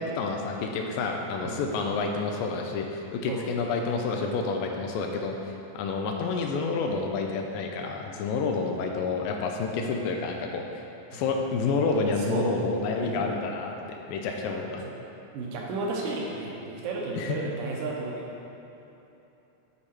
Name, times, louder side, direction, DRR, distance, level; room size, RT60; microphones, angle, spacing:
voice 1, 0.0-5.4 5.7-10.8 11.1-13.7 14.1-14.8 17.2-17.4, left 4 dB, 80° left, 2 dB, 2.3 m, -29 dB
voice 2, 12.2-12.7 13.0-13.3 14.4-15.0 15.3-18.3, right 3 dB, 75° right, -2 dB, 2.4 m, -33 dB
8.3 x 4.9 x 4.4 m, 3.0 s
omnidirectional pair, 4.1 m